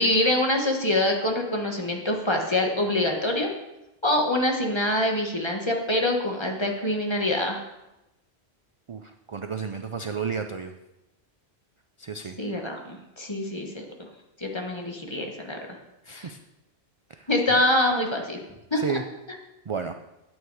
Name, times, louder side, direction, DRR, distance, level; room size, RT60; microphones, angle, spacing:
voice 1, 0.0-3.5 4.0-7.6 12.4-13.8 14.4-15.8 16.1-16.2 17.3-18.4 18.7-19.0, left 1 dB, 25° left, 2 dB, 1.4 m, -25 dB
voice 2, 8.9-10.8 12.0-12.4 16.1-16.4 17.1-17.6 18.7-19.0 19.7-19.9, right 6 dB, 45° right, 7 dB, 0.4 m, -32 dB
9.5 x 8.9 x 4.8 m, 0.96 s
omnidirectional pair, 1.1 m